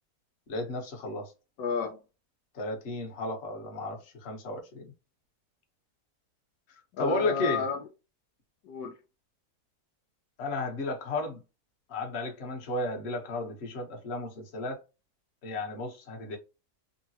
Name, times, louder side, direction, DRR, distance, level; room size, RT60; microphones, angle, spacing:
voice 1, 0.5-1.3 2.5-4.9 7.0-7.6 10.4-11.4 11.9-14.8 15.4-16.4, left 2 dB, 50° left, 1.0 m, -33 dB
voice 2, 1.6-2.0 6.9-7.8 8.6-8.9, left 5 dB, 75° left, 1.1 m, -31 dB
3.8 x 2.1 x 2.7 m
omnidirectional pair, 1.7 m